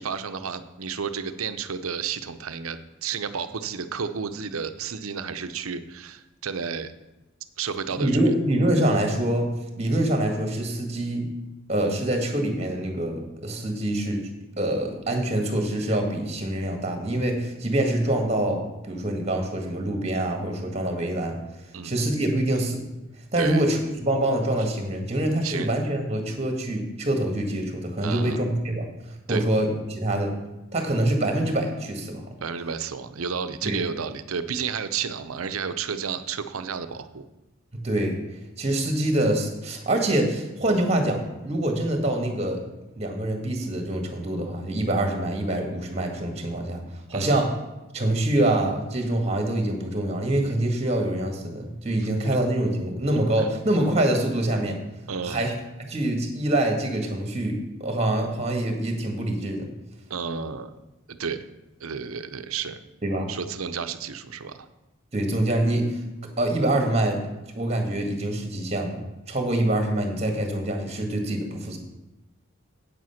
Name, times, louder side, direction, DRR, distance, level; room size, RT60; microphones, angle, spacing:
voice 1, 0.0-6.9 7.6-8.2 21.7-21.9 23.4-23.6 25.4-25.7 28.0-28.4 29.3-29.4 32.4-37.2 47.1-47.4 53.4-53.6 55.1-55.4 60.1-60.7 61.1-61.5 61.8-62.8 63.3-64.7, right 6 dB, 90° right, 11 dB, 0.7 m, -31 dB
voice 2, 7.9-11.3 11.7-14.2 14.6-21.4 21.8-22.8 23.3-28.9 29.3-30.3 30.7-32.3 33.6-33.8 37.7-38.2 38.6-42.6 43.0-46.8 47.1-47.5 47.9-54.8 55.2-55.5 55.9-59.7 63.0-63.3 65.1-66.0 66.4-67.2 67.5-69.0 69.3-71.8, right 1 dB, 30° right, 3 dB, 1.8 m, -25 dB
8.7 x 7.8 x 5.8 m, 1.0 s
head